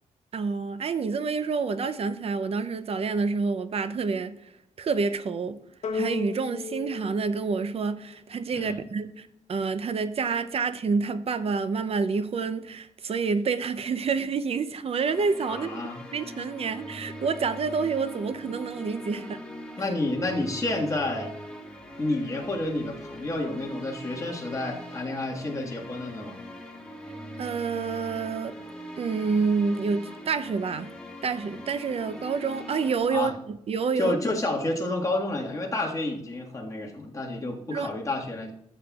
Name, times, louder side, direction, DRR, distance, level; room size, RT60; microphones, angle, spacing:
voice 1, 0.3-4.4 4.8-5.6 5.9-15.8 16.1-19.4 27.4-28.6 29.0-30.9 31.2-34.1 37.7-37.9, right 5 dB, 55° right, 0.6 m, -28 dB
sound 1, 5.8-8.4, left 5 dB, 70° left, 0.9 m, -35 dB
sound 2, 15.0-33.0, equal, 5° left, 1.6 m, -42 dB
voice 2, 15.5-16.0 19.2-19.3 19.8-21.3 22.0-26.4 33.1-33.3 34.0-38.5, left 2 dB, 25° left, 1.7 m, -30 dB
13.5 x 7.6 x 2.4 m
wide cardioid pair, 110°, 12 cm